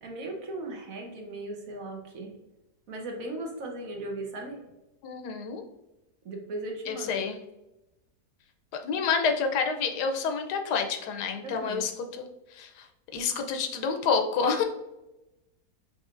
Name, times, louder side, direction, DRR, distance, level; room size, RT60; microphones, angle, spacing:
voice 1, 0.0-2.3 2.9-4.6 6.2-7.3 11.4-11.8, right 2 dB, 60° right, 1 dB, 1.2 m, -37 dB
voice 2, 5.0-5.6 6.9-7.3 8.8-12.3 12.5-12.9 13.1-14.6, left 5 dB, 85° left, 5 dB, 1.2 m, -28 dB
5.4 x 3.1 x 2.5 m, 0.96 s
omnidirectional pair, 1.7 m